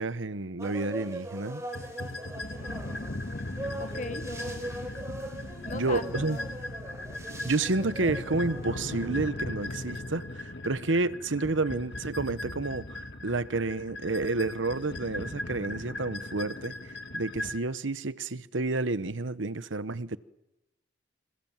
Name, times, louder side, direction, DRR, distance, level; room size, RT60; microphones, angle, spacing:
voice 1, 0.0-1.6 5.7-6.4 7.4-16.7 17.1-20.2, right 3 dB, 85° right, 1.0 m, -30 dB
sound 1, 0.6-9.2, right 1 dB, 15° right, 6.0 m, -41 dB
sound 2, 1.7-17.6, left 1 dB, 60° left, 1.9 m, -38 dB
voice 2, 3.2-4.7 5.6-6.6, left 3 dB, 40° left, 1.8 m, -40 dB
27.0 x 26.0 x 7.5 m
head